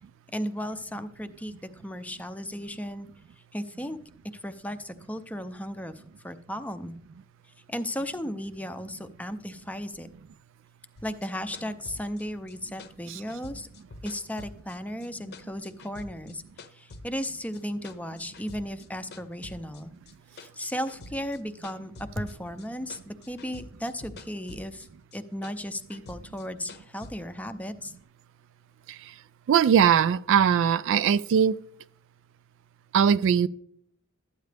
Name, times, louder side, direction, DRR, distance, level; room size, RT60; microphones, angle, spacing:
voice 1, 0.3-3.1 3.5-4.0 4.4-7.0 7.7-10.1 11.0-13.7 14.0-16.4 16.7-19.9 20.4-24.9 25.1-27.9, equal, 5° left, 0.5 m, -35 dB
sound 1, 11.0-15.1 15.3-17.3 17.5-18.9 19.1-22.7 22.9-24.9 25.1-27.1, left 2 dB, 50° left, 0.8 m, -46 dB
voice 2, 29.5-31.6 32.9-33.5, right 8 dB, 65° right, 0.3 m, -21 dB
12.5 x 9.2 x 3.3 m
head